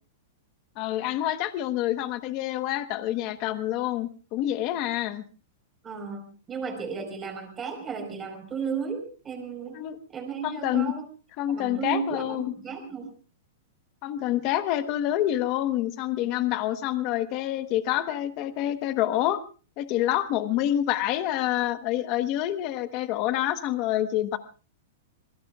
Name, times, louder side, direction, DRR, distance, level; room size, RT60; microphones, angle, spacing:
voice 1, 0.8-5.2 9.7-10.0 10.4-10.9 11.4-12.5 14.0-19.4 19.8-24.4, left 13 dB, 30° left, 10 dB, 1.2 m, -27 dB
voice 2, 5.8-9.8 10.1-11.0 11.5-13.1, right 6 dB, 15° right, 4 dB, 4.6 m, -34 dB
25.5 x 22.5 x 2.4 m, 0.37 s
supercardioid pair, 175°, 0 cm